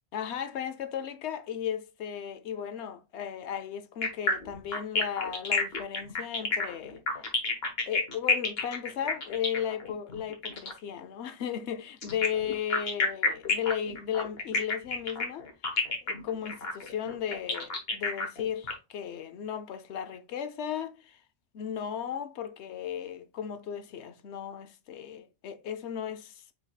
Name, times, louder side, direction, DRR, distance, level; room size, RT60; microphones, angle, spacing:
voice 1, 0.1-7.2 7.9-15.5 16.0-21.2 21.5-26.4, left 8 dB, 85° left, 1.0 m, -35 dB
sound 1, 4.0-10.8 12.0-18.7, left 4 dB, 65° left, 1.4 m, -29 dB
5.0 x 4.6 x 2.3 m
omnidirectional pair, 1.1 m